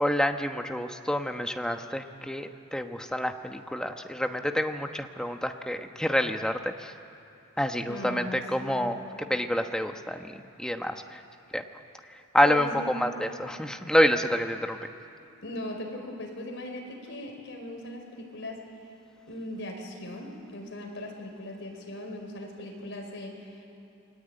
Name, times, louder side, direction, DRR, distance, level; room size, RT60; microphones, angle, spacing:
voice 1, 0.0-6.9 7.6-9.0 9.3-11.2 11.5-11.6 12.3-14.8, equal, 5° left, 5 dB, 1.1 m, -28 dB
voice 2, 7.8-9.2 12.4-13.0 15.2-18.6 19.3-23.6, left 1 dB, 55° left, 2 dB, 5.2 m, -39 dB
29.5 x 22.0 x 9.1 m, 2.7 s
head